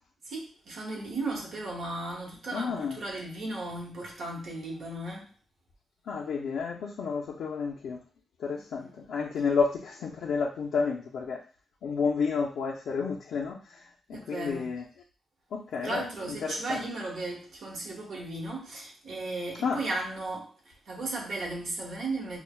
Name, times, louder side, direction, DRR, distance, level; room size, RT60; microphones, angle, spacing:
voice 1, 0.2-5.3 8.5-9.0 14.1-14.7 15.8-22.4, right 2 dB, 65° right, -2 dB, 1.2 m, -36 dB
voice 2, 2.5-3.0 6.1-8.0 8.4-11.4 11.8-13.8 14.1-14.8 15.5-16.9 19.6-19.8, left 5 dB, 85° left, -3 dB, 0.4 m, -31 dB
5.4 x 2.1 x 2.2 m, 0.38 s
cardioid pair, 120°, 0 cm